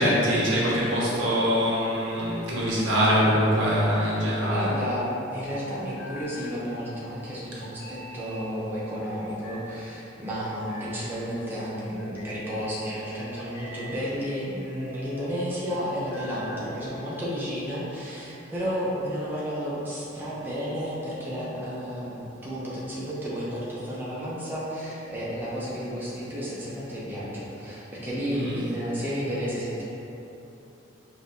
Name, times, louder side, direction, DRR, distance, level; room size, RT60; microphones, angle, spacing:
voice 1, 0.0-4.7 28.3-28.6, equal, 90° right, -7 dB, 1.0 m, -23 dB
voice 2, 4.4-29.8, equal, 10° right, -8 dB, 0.6 m, -32 dB
sound 1, 5.8-6.6 7.6-8.4 9.0-9.7 10.3-11.1 11.8-12.4 13.1-14.1 14.6-15.2 15.9-16.7, equal, 70° left, 1.3 m, -44 dB
5.2 x 2.6 x 2.6 m, 3.0 s
head